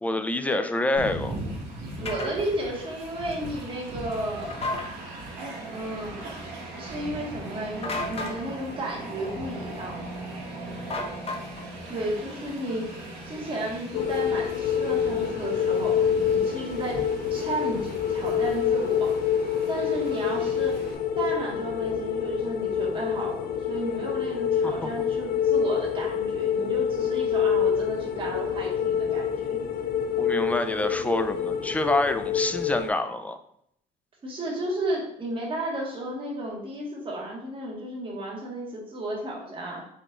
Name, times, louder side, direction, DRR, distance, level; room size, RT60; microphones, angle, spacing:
voice 1, 0.0-1.4 24.6-24.7 30.2-33.4, left 2 dB, 10° left, 9 dB, 0.3 m, -27 dB
Train, 1.0-21.0, right 1 dB, 70° right, 1.7 m, -39 dB
voice 2, 2.0-5.0 5.6-6.3 6.8-10.1 11.9-12.9 13.2-17.0 17.3-19.1 19.7-20.8 21.1-29.6 34.2-39.8, right 1 dB, 30° right, -3 dB, 1.5 m, -33 dB
sound 1, 2.1-2.3 4.5-4.9 7.8-8.4 10.9-11.7, left 2 dB, 35° left, 0.9 m, -31 dB
sound 2, 13.9-32.9, left 8 dB, 60° left, 0.5 m, -26 dB
5.3 x 4.1 x 2.4 m, 0.72 s
cardioid pair, 110°, 17 cm